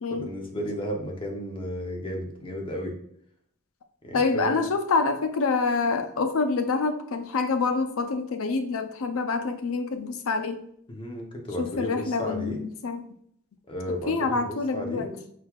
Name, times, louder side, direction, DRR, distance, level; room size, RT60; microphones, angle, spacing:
voice 1, 0.1-3.0 4.0-4.6 10.9-12.6 13.7-15.2, equal, 25° left, 1 dB, 0.8 m, -33 dB
voice 2, 4.1-10.6 11.6-13.0 14.1-15.1, left 4 dB, 70° left, 8 dB, 0.5 m, -26 dB
4.5 x 3.8 x 2.3 m, 0.67 s
head